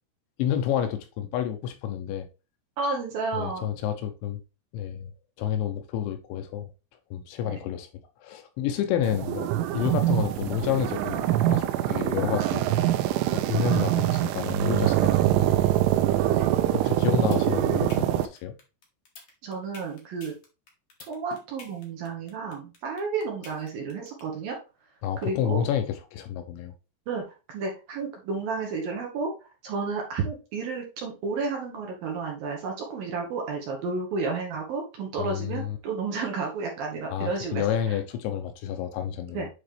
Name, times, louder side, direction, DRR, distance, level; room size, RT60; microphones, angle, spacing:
voice 1, 0.4-2.3 3.3-4.4 4.7-5.1 5.4-6.7 7.1-7.9 8.2-12.6 13.3-15.6 16.7-18.5 25.0-26.7 35.2-35.8 37.1-39.5, left 10 dB, 80° left, 3.2 m, -29 dB
voice 2, 2.8-3.7 7.4-7.6 16.2-16.5 19.4-20.3 21.1-24.6 25.2-25.6 27.1-27.2 27.5-29.3 29.6-38.0 39.3-39.5, right 4 dB, 65° right, 2.7 m, -31 dB
sound 1, 9.0-18.3, right 13 dB, 90° right, 3.1 m, -24 dB
sound 2, 17.2-24.2, left 4 dB, 55° left, 1.6 m, -48 dB
9.0 x 4.0 x 3.3 m
omnidirectional pair, 5.4 m